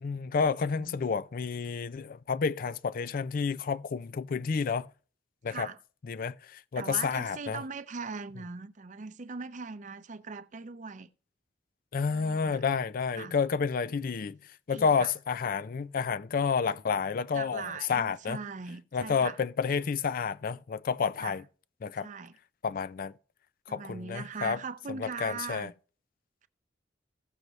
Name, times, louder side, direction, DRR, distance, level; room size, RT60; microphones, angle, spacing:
voice 1, 0.0-4.9 5.4-5.7 6.1-7.6 11.9-14.4 14.7-18.4 18.9-21.4 21.8-22.1 22.6-23.1 23.7-24.6 25.0-25.7, left 5 dB, 50° left, 0.4 m, -30 dB
voice 2, 0.7-1.1 5.5-5.8 6.7-11.1 12.1-12.6 13.1-13.4 14.7-15.1 17.3-19.4 21.2-21.4 22.0-22.4 23.7-25.7, right 5 dB, 40° right, 0.5 m, -40 dB
15.5 x 6.6 x 3.1 m
head